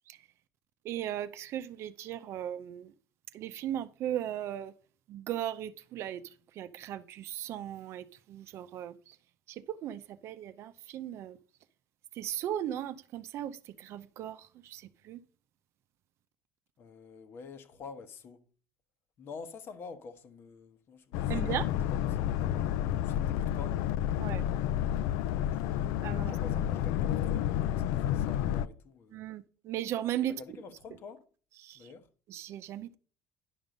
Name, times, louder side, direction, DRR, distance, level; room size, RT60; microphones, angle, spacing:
voice 1, 0.8-2.9 3.3-4.7 5.1-9.2 9.5-11.4 12.1-15.2 21.3-21.6 24.2-24.4 26.0-26.3 29.1-30.4 31.6-31.9 32.3-33.0, right 11 dB, 55° right, 0.6 m, -37 dB
voice 2, 16.8-18.4 19.2-21.7 21.9-22.3 23.0-23.8 25.5-25.9 26.3-29.2 30.3-31.3 31.7-32.1, left 5 dB, 45° left, 1.2 m, -48 dB
Boat Water vehicle, 21.1-28.7, left 11 dB, 75° left, 0.4 m, -30 dB
11.0 x 5.4 x 5.1 m
cardioid pair, 130°, 5 cm